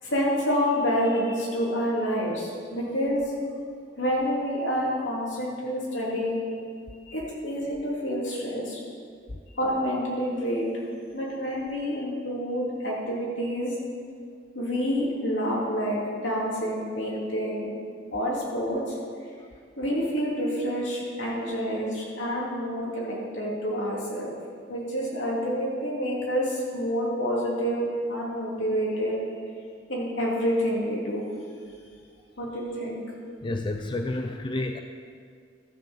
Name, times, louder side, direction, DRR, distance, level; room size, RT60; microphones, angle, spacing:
voice 1, 0.0-3.2 4.0-6.5 7.1-8.8 9.6-10.8 11.1-13.7 14.5-17.7 18.1-18.9 19.8-24.3 24.7-29.2 29.9-31.3 32.4-33.0, equal, 80° left, -5 dB, 3.1 m, -28 dB
voice 2, 33.4-34.8, left 2 dB, 25° left, 5 dB, 0.4 m, -30 dB
13.0 x 5.8 x 7.3 m, 2.1 s
head